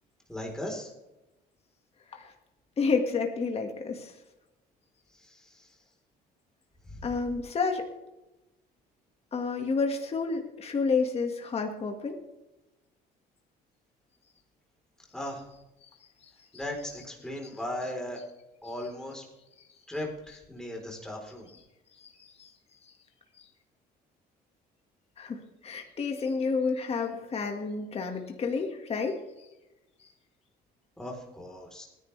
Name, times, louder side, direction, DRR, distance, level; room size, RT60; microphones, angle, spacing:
voice 1, 0.3-0.9 5.1-5.8 6.9-7.1 15.1-15.4 16.5-18.2 18.6-19.2 19.9-21.5 31.0-31.9, left 1 dB, 5° left, 0 dB, 4.0 m, -37 dB
voice 2, 2.8-4.1 7.0-7.9 9.3-12.2 15.8-15.9 22.0-22.5 23.4-23.5 25.2-29.2, left 4 dB, 35° left, 3 dB, 1.9 m, -30 dB
28.0 x 10.5 x 3.4 m, 0.99 s
cardioid pair, 110°, 17 cm